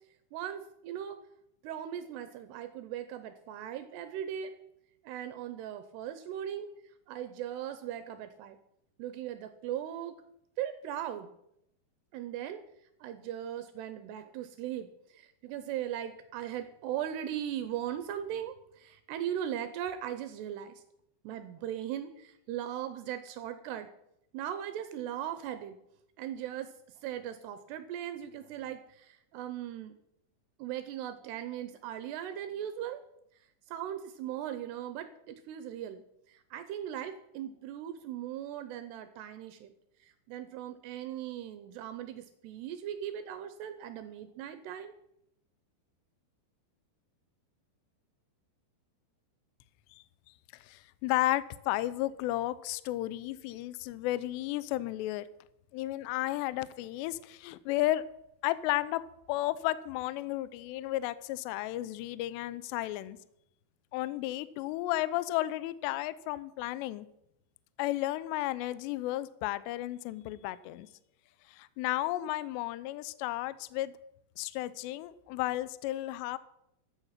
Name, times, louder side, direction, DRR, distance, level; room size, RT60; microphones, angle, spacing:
voice 1, 0.3-1.2 1.6-4.6 5.0-6.7 7.1-8.6 9.0-10.2 10.6-11.3 12.1-12.6 13.0-20.8 21.2-23.9 24.3-25.8 26.2-30.0 30.6-33.0 33.7-39.7 40.0-45.0, right 10 dB, 85° right, 10 dB, 2.4 m, -39 dB
voice 2, 50.7-55.3 55.7-58.0 58.4-59.0 59.3-63.2 63.9-67.1 67.8-70.9 71.5-73.9 74.4-76.4, left 16 dB, 85° left, 17 dB, 2.5 m, -33 dB
14.0 x 8.2 x 5.8 m, 0.79 s
omnidirectional pair, 5.6 m